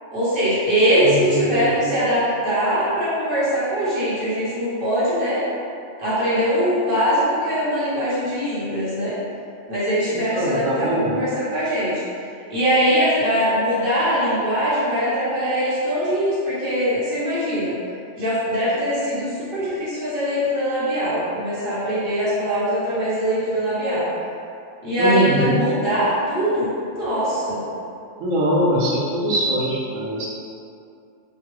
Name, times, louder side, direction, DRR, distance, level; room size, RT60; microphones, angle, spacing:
voice 1, 0.1-5.4 6.0-9.2 9.7-11.9 12.5-17.7 18.2-24.1 24.8-27.6, equal, 50° right, -11 dB, 1.0 m, -22 dB
voice 2, 1.0-1.9 10.1-11.2 25.0-25.6 28.2-30.3, right 1 dB, 85° right, -4 dB, 1.0 m, -22 dB
2.9 x 2.3 x 2.9 m, 2.5 s
omnidirectional pair, 1.3 m